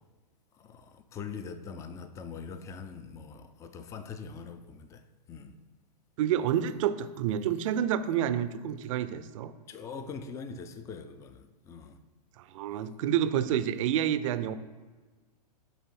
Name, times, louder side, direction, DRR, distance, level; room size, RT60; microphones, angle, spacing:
voice 1, 1.1-5.0 5.3-5.5 9.7-11.4 11.7-12.0, left 5 dB, 15° left, 0.3 m, -42 dB
voice 2, 6.2-9.5 12.4-14.5, right 10 dB, 50° right, 0.5 m, -29 dB
6.9 x 3.8 x 4.4 m
hypercardioid pair, 115°, 21 cm